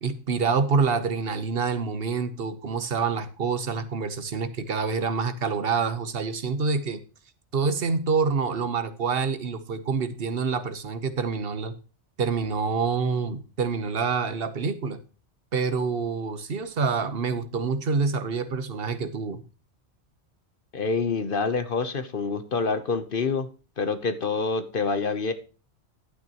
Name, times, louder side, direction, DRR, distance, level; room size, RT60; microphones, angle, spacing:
voice 1, 0.0-7.0 7.5-11.7 12.2-15.0 15.5-19.4, right 5 dB, 55° right, 12 dB, 1.2 m, -27 dB
voice 2, 20.7-23.5 23.8-25.3, left 4 dB, 55° left, 11 dB, 1.0 m, -27 dB
11.5 x 9.2 x 2.9 m, 0.35 s
omnidirectional pair, 1.2 m